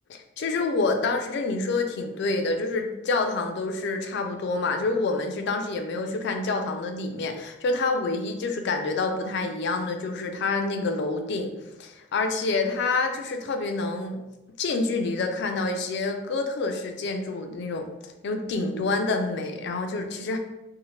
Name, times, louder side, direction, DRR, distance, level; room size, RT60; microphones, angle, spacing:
voice 1, 0.1-11.5 11.8-14.2 14.6-17.9 18.2-20.4, left 3 dB, 60° left, 5 dB, 0.3 m, -27 dB
2.8 x 2.0 x 3.0 m, 0.97 s
head